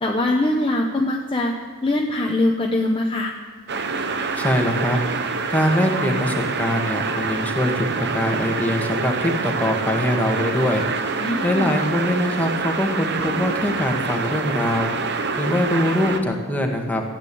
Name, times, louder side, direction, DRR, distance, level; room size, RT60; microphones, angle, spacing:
voice 1, 0.0-1.5 1.8-3.3 11.2-11.7, left 1 dB, 25° left, 1 dB, 0.9 m, -22 dB
sound 1, 3.7-16.2, right 4 dB, 50° right, 1.1 m, -26 dB
voice 2, 4.4-5.0 5.5-14.9 15.4-17.0, left 1 dB, 10° left, 1 dB, 1.7 m, -23 dB
14.0 x 8.9 x 8.5 m, 1.5 s
head